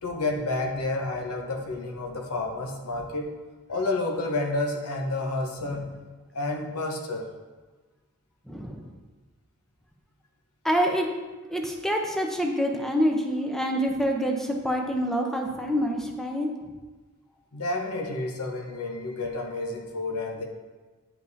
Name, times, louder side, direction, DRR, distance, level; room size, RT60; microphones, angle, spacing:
voice 1, 0.0-3.4 3.7-5.9 6.3-7.3 17.5-20.4, left 2 dB, 80° left, 1 dB, 0.9 m, -30 dB
voice 2, 8.5-8.9 10.6-11.1 11.5-16.5, equal, ahead, 2 dB, 0.7 m, -26 dB
9.7 x 5.3 x 2.7 m, 1.3 s
head